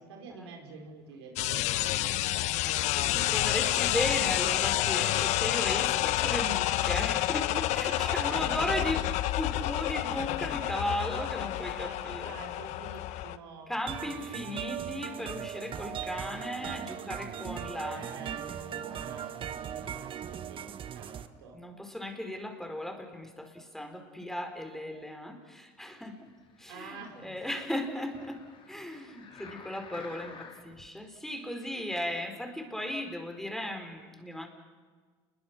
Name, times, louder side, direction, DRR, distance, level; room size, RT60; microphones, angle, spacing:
voice 1, 0.0-3.6 7.6-9.0 11.0-11.5 11.7-13.7 17.8-21.6 26.7-27.3, right 4 dB, 85° right, 2 dB, 4.7 m, -47 dB
sound 1, 1.4-13.4, left 15 dB, 60° left, 0.9 m, -29 dB
voice 2, 3.1-9.0 9.4-12.2 13.7-18.0 21.5-26.3 26.6-34.5, left 1 dB, 5° left, 5 dB, 4.4 m, -36 dB
sound 2, 13.9-21.3, right 9 dB, 40° right, 1.4 m, -38 dB
sound 3, 26.3-30.9 31.5-31.6, left 5 dB, 40° left, 4.3 m, -51 dB
29.5 x 22.0 x 6.1 m, 1.5 s
supercardioid pair, 85°, 13 cm